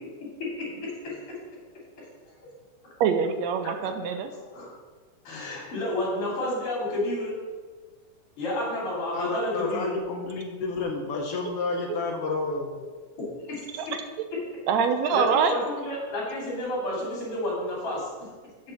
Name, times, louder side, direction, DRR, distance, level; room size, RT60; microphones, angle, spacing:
voice 1, 0.8-1.2 4.5-4.7 5.2-7.3 8.4-10.0 13.4-13.9 15.1-18.3, left 1 dB, 45° left, -4 dB, 3.8 m, -30 dB
voice 2, 3.0-4.3 13.7-13.8 14.7-15.6, right 6 dB, 80° right, 7 dB, 1.6 m, -24 dB
voice 3, 9.1-12.8, left 3 dB, 75° left, 2 dB, 1.3 m, -30 dB
6.8 x 6.4 x 6.8 m, 1.4 s
omnidirectional pair, 3.6 m